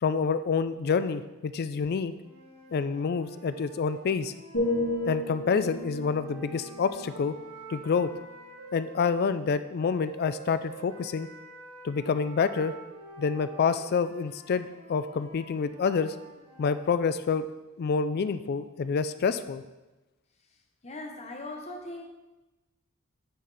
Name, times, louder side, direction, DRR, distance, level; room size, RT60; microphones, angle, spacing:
voice 1, 0.0-2.1 2.7-4.3 5.1-7.4 7.7-8.1 8.7-11.3 11.8-12.7 13.2-16.1 16.6-17.5 17.8-19.6, left 5 dB, 45° left, 12 dB, 0.3 m, -27 dB
sound 1, 2.1-9.1 9.8-17.0, right 2 dB, 90° right, 1.6 m, -48 dB
sound 2, 4.5-8.4 8.9-9.2, left 1 dB, 90° left, 1.8 m, -34 dB
voice 2, 20.8-22.1, left 2 dB, 30° left, 3 dB, 0.9 m, -39 dB
9.2 x 4.4 x 4.0 m, 1.1 s
head